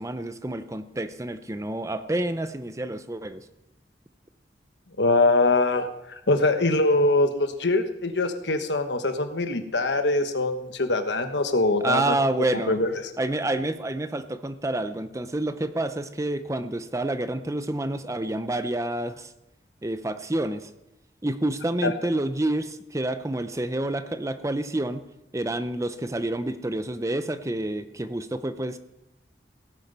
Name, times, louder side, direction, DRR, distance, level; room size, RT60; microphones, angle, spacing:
voice 1, 0.0-3.4 11.8-12.8 13.2-19.3 19.8-20.7 21.2-25.0 25.3-28.8, right 1 dB, 20° right, 10 dB, 0.6 m, -28 dB
voice 2, 5.0-12.2 12.7-12.9 21.8-21.9, left 2 dB, 85° left, 7 dB, 1.2 m, -23 dB
17.0 x 9.2 x 5.5 m, 0.90 s
head